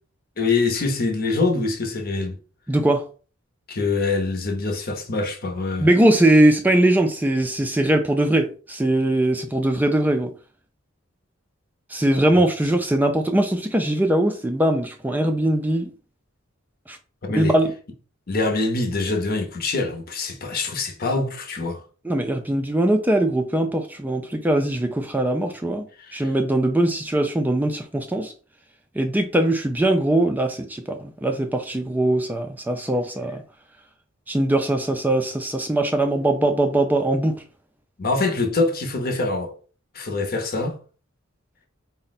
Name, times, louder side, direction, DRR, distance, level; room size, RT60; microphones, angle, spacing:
voice 1, 0.4-2.3 3.7-5.9 12.3-12.4 17.2-17.5 18.3-21.8 26.0-26.3 38.0-39.5 39.9-40.7, left 3 dB, 50° left, 0.8 m, -24 dB
voice 2, 2.7-3.0 5.8-10.3 11.9-15.9 16.9-17.0 17.3-17.7 22.0-25.9 26.1-28.3 29.0-33.4 34.3-37.4, right 1 dB, 10° right, 0.3 m, -21 dB
4.0 x 2.1 x 4.0 m
head